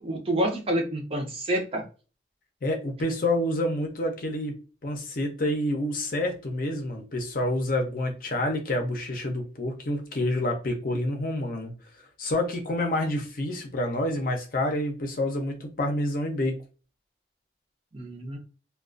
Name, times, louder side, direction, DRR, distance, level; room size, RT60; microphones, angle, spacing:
voice 1, 0.0-1.8 17.9-18.4, right 1 dB, 30° right, 0.6 m, -28 dB
voice 2, 2.6-4.6 4.8-11.7 12.2-16.6, left 1 dB, 50° left, 0.6 m, -28 dB
2.3 x 2.2 x 2.4 m
head